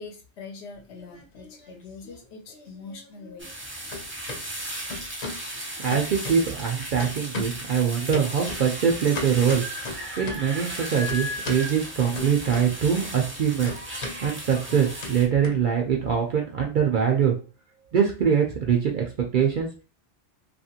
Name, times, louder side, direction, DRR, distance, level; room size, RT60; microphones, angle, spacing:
voice 1, 0.0-3.5, left 4 dB, 65° left, 3 dB, 0.9 m, -43 dB
sound 1, 0.8-1.7 2.0-3.6 3.9-4.4 4.9-5.5 5.9-6.7 7.0-7.7 8.1-10.6 11.1-11.7 12.1-13.0 13.2-16.1, left 3 dB, 50° left, 0.5 m, -37 dB
sound 2, 3.4-15.3, right 1 dB, 15° right, 0.5 m, -36 dB
voice 2, 5.8-9.6 10.2-13.8 14.2-17.3 17.9-19.7, right 7 dB, 60° right, 1 dB, 0.5 m, -23 dB
2.8 x 2.5 x 2.7 m, 0.35 s
omnidirectional pair, 1.2 m